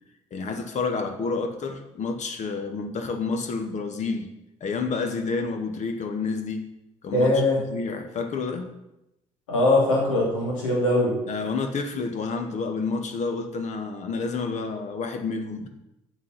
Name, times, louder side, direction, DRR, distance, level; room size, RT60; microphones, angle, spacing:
voice 1, 0.3-4.3 4.6-6.7 7.0-7.3 7.7-8.7 11.3-15.7, left 4 dB, 50° left, 7 dB, 1.5 m, -29 dB
voice 2, 7.1-7.6 9.5-11.1, left 1 dB, 85° left, -3 dB, 3.1 m, -21 dB
8.2 x 7.5 x 5.8 m, 0.90 s
hypercardioid pair, 60°, 16 cm